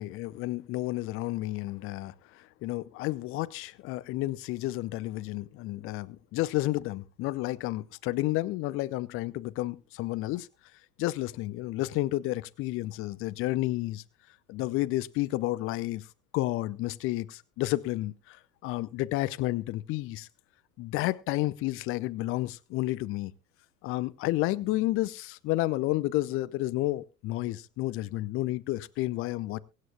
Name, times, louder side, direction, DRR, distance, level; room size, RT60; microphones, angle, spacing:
voice 1, 0.0-10.5 11.0-14.0 14.5-16.1 16.3-20.3 20.8-23.3 23.8-29.6, left 17 dB, 30° left, 0.6 m, -31 dB
23.0 x 9.5 x 2.3 m
figure-of-eight pair, 80°, 44 cm